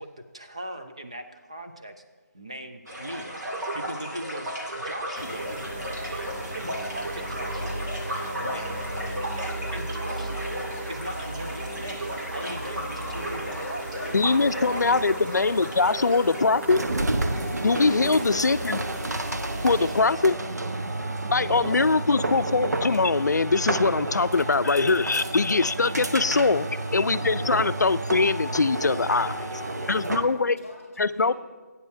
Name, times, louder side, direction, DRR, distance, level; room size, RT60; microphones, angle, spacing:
voice 1, 0.0-1.9 2.3-3.4 3.7-4.5 4.8-10.6 10.9-15.0 17.7-18.6 19.8-20.1 21.6-21.8 29.1-30.2, right 1 dB, 20° right, 5 dB, 0.4 m, -40 dB
sound 1, 2.9-16.4, equal, 90° right, 2.2 m, -35 dB
sound 2, 5.1-20.0, right 1 dB, 40° right, 1.0 m, -36 dB
voice 2, 14.1-16.8 17.6-18.8 19.6-20.3 21.3-26.6 26.9-29.4 29.9-30.6 31.0-31.3, left 4 dB, 80° left, 14 dB, 0.4 m, -22 dB
sound 3, 16.6-30.4, right 2 dB, 70° right, 0.9 m, -30 dB
voice 3, 19.7-21.5 25.9-26.7 27.2-27.4 29.5-31.3, left 2 dB, 10° left, -1 dB, 2.2 m, -47 dB
19.5 x 9.5 x 2.7 m, 1.3 s
figure-of-eight pair, 180°, 9 cm